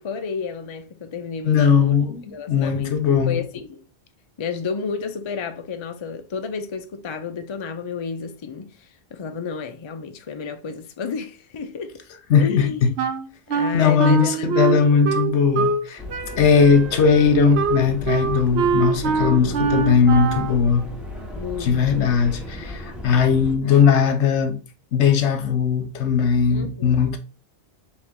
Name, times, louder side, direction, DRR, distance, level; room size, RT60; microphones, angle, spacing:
voice 1, 0.0-2.0 2.3-3.0 3.3-3.8 4.4-12.0 12.4-12.9 13.5-15.1 19.1-19.7 21.3-22.2 26.5-27.1, left 5 dB, 45° left, 0.4 m, -32 dB
voice 2, 1.4-2.2 2.5-3.4 12.3-12.9 13.7-16.0 16.4-20.9 21.6-24.6 24.9-27.2, left 6 dB, 80° left, 1.1 m, -18 dB
Wind instrument woodwind instrument, 13.0-15.8 16.1-20.6, right 5 dB, 75° right, 0.9 m, -24 dB
sound 1, 16.0-23.6, left 1 dB, ahead, 0.8 m, -35 dB
4.1 x 3.0 x 3.6 m
omnidirectional pair, 1.1 m